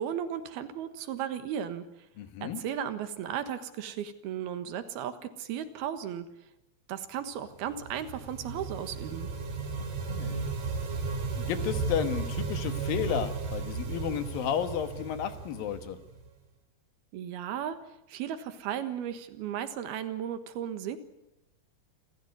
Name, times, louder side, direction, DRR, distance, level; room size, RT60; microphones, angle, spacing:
voice 1, 0.0-1.9 2.4-6.3 6.9-9.3 17.1-17.8 18.1-21.0, right 9 dB, 80° right, 10 dB, 3.4 m, -35 dB
voice 2, 2.2-2.6 10.1-10.4 11.3-16.0, left 8 dB, 70° left, 10 dB, 2.9 m, -32 dB
sound 1, 7.5-16.3, right 4 dB, 55° right, 4.7 m, -35 dB
27.5 x 14.5 x 9.6 m, 0.89 s
omnidirectional pair, 4.4 m